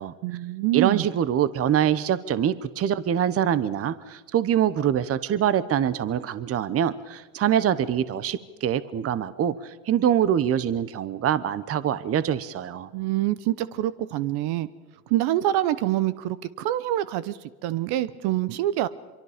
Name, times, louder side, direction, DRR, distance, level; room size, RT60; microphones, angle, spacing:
voice 1, 0.2-1.1 12.9-14.7 15.1-18.9, right 14 dB, 60° right, 15 dB, 1.0 m, -26 dB
voice 2, 0.7-12.9, right 9 dB, 30° right, 16 dB, 0.9 m, -24 dB
25.0 x 23.5 x 5.1 m, 1.2 s
supercardioid pair, 110°, 45 cm